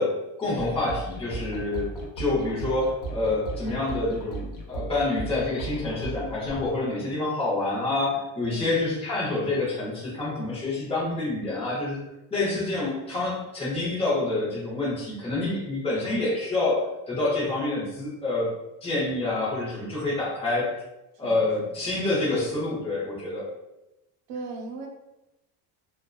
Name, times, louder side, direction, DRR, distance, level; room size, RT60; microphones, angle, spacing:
voice 1, 0.0-1.9 2.2-12.0 12.3-18.5 18.8-20.7 21.2-23.5, left 2 dB, 15° left, -6 dB, 0.6 m, -27 dB
sound 1, 0.5-6.8, right 3 dB, 55° left, 0.6 m, -36 dB
voice 2, 8.5-8.8 21.2-21.8 24.3-24.9, right 3 dB, 80° right, 1 dB, 0.7 m, -38 dB
2.5 x 2.1 x 2.2 m, 0.95 s
cardioid pair, 175°, 40 cm